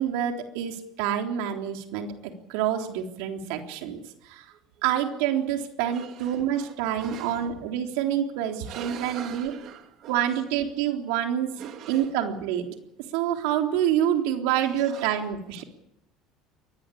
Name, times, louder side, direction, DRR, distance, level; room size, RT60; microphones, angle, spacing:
voice 1, 0.0-2.1 2.5-4.5 4.8-9.6 10.1-11.5 11.9-12.7 13.1-15.6, right 10 dB, 80° right, 3.6 m, -27 dB
voice 2, 5.9-6.7 7.0-7.4 8.6-10.2 11.6-12.1 14.8-15.1, right 10 dB, 50° right, 2.5 m, -42 dB
22.5 x 18.5 x 8.5 m
cardioid pair, 145°, 0 cm